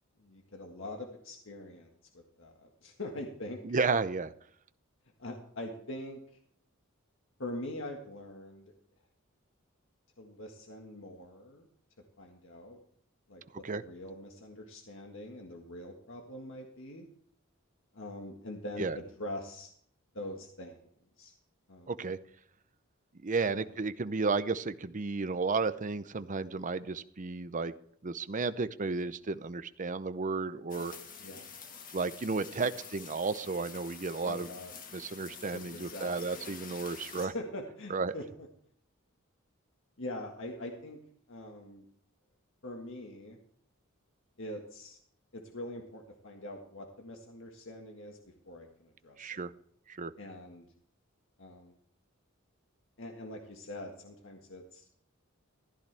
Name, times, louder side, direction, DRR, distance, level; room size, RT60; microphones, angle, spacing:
voice 1, 0.2-1.9 2.4-3.8 5.2-6.2 7.4-8.7 10.2-11.7 12.2-12.8 13.3-17.1 17.9-19.7 20.1-20.8 21.2-21.3 21.7-22.1 23.5-23.7 31.2-31.5 32.6-32.7 34.2-34.7 35.5-38.5 40.0-41.0 41.3-41.8 42.6-43.4 44.4-45.0 45.3-48.2 48.5-49.5 50.2-50.7 51.4-51.7 53.0-54.9, left 1 dB, 65° left, 2 dB, 1.7 m, -43 dB
voice 2, 3.6-4.3 13.6-13.8 18.8-19.0 21.9-22.2 23.2-27.7 28.0-30.9 31.9-34.5 34.9-37.3 37.9-38.1 49.2-49.5 49.9-50.1, right 4 dB, 40° right, 13 dB, 0.7 m, -33 dB
sound 1, 30.7-37.3, left 6 dB, 40° left, 1.7 m, -48 dB
15.0 x 11.0 x 3.4 m, 0.63 s
head